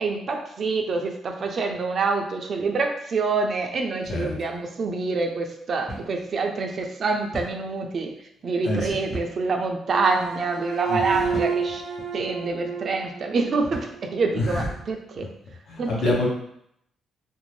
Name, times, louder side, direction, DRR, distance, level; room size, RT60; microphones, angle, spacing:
voice 1, 0.0-8.1 8.4-11.8 12.1-15.3 15.8-16.2, right 4 dB, 50° right, 4 dB, 0.4 m, -26 dB
sound 1, 5.9-6.2 6.5-6.6 7.3-7.6 9.1-9.5 10.1-10.3 11.3-11.7 12.4-12.6 13.6-14.0, equal, 30° left, 1.0 m, -37 dB
voice 2, 8.6-9.0 10.9-11.3 14.3-14.7 15.7-16.3, left 2 dB, 70° left, -3 dB, 0.8 m, -26 dB
sound 2, 9.9-14.2, right 6 dB, 80° right, 0.7 m, -31 dB
2.5 x 2.0 x 3.1 m, 0.74 s
cardioid pair, 100°, 0 cm